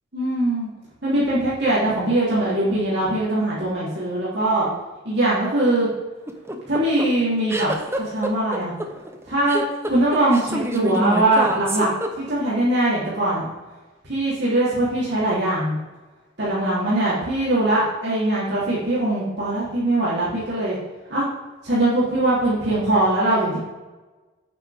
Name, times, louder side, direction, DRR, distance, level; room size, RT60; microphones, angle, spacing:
voice 1, 0.1-0.7 1.0-4.7 5.0-5.9 6.7-7.7 8.0-8.7 9.3-9.6 9.9-11.9 12.2-13.5 14.1-15.8 16.4-20.8 21.1-21.3 21.6-23.6, right 1 dB, 60° right, -8 dB, 3.3 m, -21 dB
sound 1, 6.3-12.5, right 1 dB, 15° right, 0.8 m, -27 dB
8.8 x 8.8 x 3.5 m, 1.2 s
head